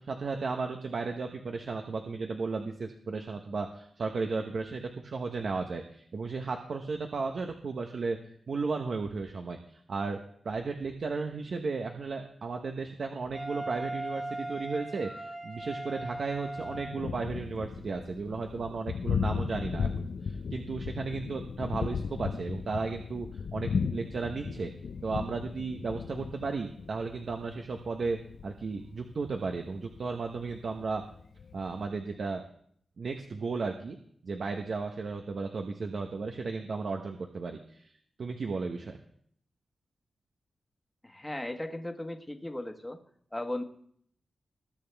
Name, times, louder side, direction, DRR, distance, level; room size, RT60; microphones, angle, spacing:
voice 1, 0.0-8.2 8.5-10.2 10.4-24.7 25.0-28.2 28.4-31.0 31.5-32.4 33.0-34.0 34.2-37.9 38.2-39.0, right 4 dB, 60° right, 4 dB, 0.9 m, -34 dB
Wind instrument woodwind instrument, 13.3-17.1, right 1 dB, 25° right, 1.6 m, -38 dB
Thunder, 16.6-31.8, left 5 dB, 70° left, 0.6 m, -36 dB
voice 2, 41.0-43.0 43.3-43.6, left 1 dB, 15° left, 5 dB, 1.3 m, -36 dB
20.5 x 8.7 x 3.4 m, 0.65 s
wide cardioid pair, 100°, 0 cm